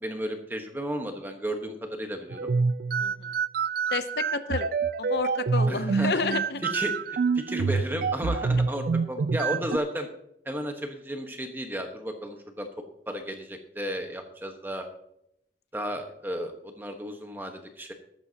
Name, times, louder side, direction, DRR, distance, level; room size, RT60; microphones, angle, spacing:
voice 1, 0.0-2.5 5.7-6.1 6.6-10.1 10.4-12.7 13.1-14.9 15.7-17.9, equal, 10° right, 5 dB, 1.2 m, -33 dB
sound 1, 2.3-9.8, right 5 dB, 55° right, 0.3 m, -27 dB
voice 2, 3.9-4.7 5.0-6.6, left 4 dB, 65° left, 10 dB, 0.7 m, -30 dB
14.0 x 12.5 x 2.9 m, 0.78 s
head